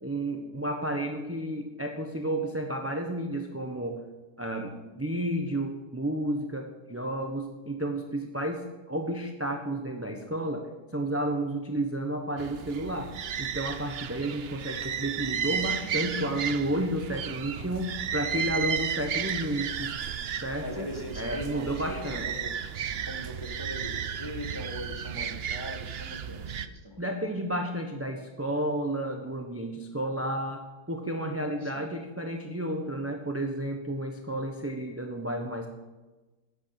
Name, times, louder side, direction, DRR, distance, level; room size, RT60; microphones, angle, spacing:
voice 1, 0.0-4.0 4.4-10.6 10.9-13.1 13.4-19.9 20.4-20.9 21.2-22.4 27.0-30.6 30.9-35.7, right 1 dB, 10° right, 3 dB, 1.0 m, -31 dB
sound 1, 12.4-26.7, right 8 dB, 55° right, 0.7 m, -34 dB
voice 2, 20.6-22.5 23.1-27.0 31.6-31.9, left 1 dB, 15° left, 3 dB, 1.6 m, -40 dB
14.5 x 10.5 x 6.0 m, 1.2 s
omnidirectional pair, 1.8 m